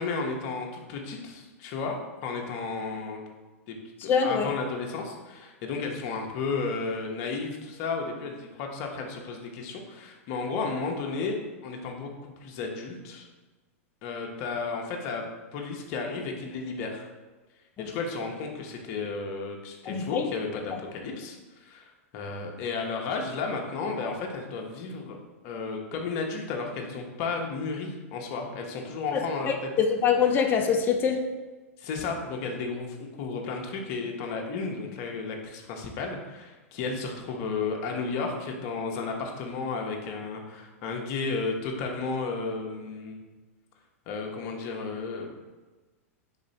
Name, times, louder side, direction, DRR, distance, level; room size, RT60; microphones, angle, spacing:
voice 1, 0.0-3.2 3.7-3.8 4.0-13.3 14.0-15.2 15.5-17.1 17.8-25.2 25.4-29.5 31.8-43.2 44.1-45.3, left 4 dB, 50° left, 2 dB, 0.8 m, -33 dB
voice 2, 4.1-4.5 17.8-17.9 19.9-20.3 29.1-29.2 29.5-31.3, left 6 dB, 25° left, 4 dB, 0.4 m, -24 dB
3.7 x 3.0 x 4.1 m, 1.2 s
hypercardioid pair, 115°, 8 cm